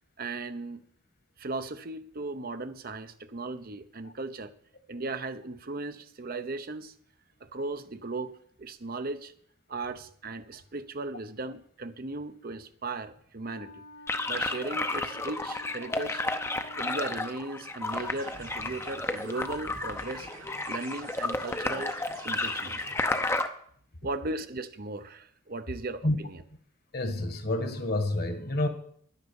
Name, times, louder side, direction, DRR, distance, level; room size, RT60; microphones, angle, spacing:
voice 1, 0.2-0.8 1.4-4.5 4.9-6.9 7.4-8.3 8.6-9.3 9.7-13.8 14.3-16.2 16.8-20.3 20.7-21.9 22.2-23.0 24.0-26.4, right 3 dB, 45° right, 0.7 m, -37 dB
Wind instrument woodwind instrument, 13.5-17.7, left 2 dB, 85° left, 2.4 m, -49 dB
sound 1, 14.1-23.5, left 2 dB, 10° left, 0.7 m, -32 dB
sound 2, 17.8-23.0, right 2 dB, 80° right, 2.9 m, -48 dB
voice 2, 26.9-28.7, left 1 dB, 45° left, 1.6 m, -28 dB
11.0 x 9.9 x 7.0 m
head